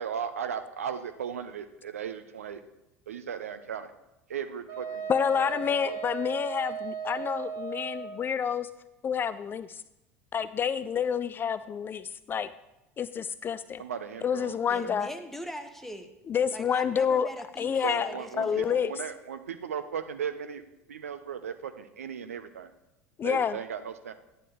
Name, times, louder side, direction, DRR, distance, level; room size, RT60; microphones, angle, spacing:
voice 1, 0.0-2.6 3.1-3.9 4.3-5.0 5.4-5.5 5.8-6.0 13.8-14.9 17.8-20.6 20.9-22.7 23.2-24.1, right 7 dB, 75° right, 10 dB, 0.6 m, -36 dB
Wind instrument woodwind instrument, 4.7-8.2, right 7 dB, 45° right, 2.2 m, -36 dB
voice 2, 5.1-8.7 9.0-9.8 10.3-12.5 13.0-13.8 14.2-15.1 16.3-17.3 17.6-18.1 18.4-18.9 23.2-23.6, left 7 dB, 30° left, 15 dB, 0.3 m, -28 dB
voice 3, 14.7-16.1 16.5-18.9, equal, 5° left, 7 dB, 1.0 m, -42 dB
11.0 x 9.8 x 3.1 m, 0.92 s
figure-of-eight pair, 70°, 8 cm